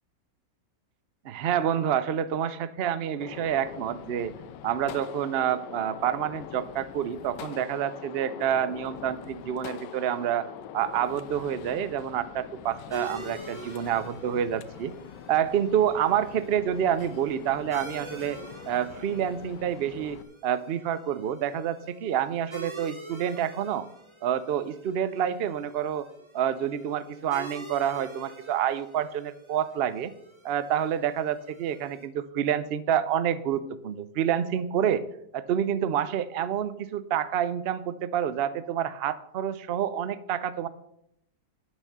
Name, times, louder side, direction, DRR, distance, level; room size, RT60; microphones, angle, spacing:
voice 1, 1.2-4.3 4.6-10.5 10.7-14.9 15.3-18.4 18.7-23.9 24.2-26.1 26.3-30.1 30.4-35.0 35.3-40.7, right 9 dB, 80° right, 15 dB, 0.5 m, -28 dB
Gunshot gunfire, 3.2-20.2, left 10 dB, 85° left, 1.3 m, -44 dB
sound 1, 12.9-32.1, right 2 dB, 20° right, 1.2 m, -46 dB
11.0 x 6.4 x 6.6 m, 0.77 s
omnidirectional pair, 1.9 m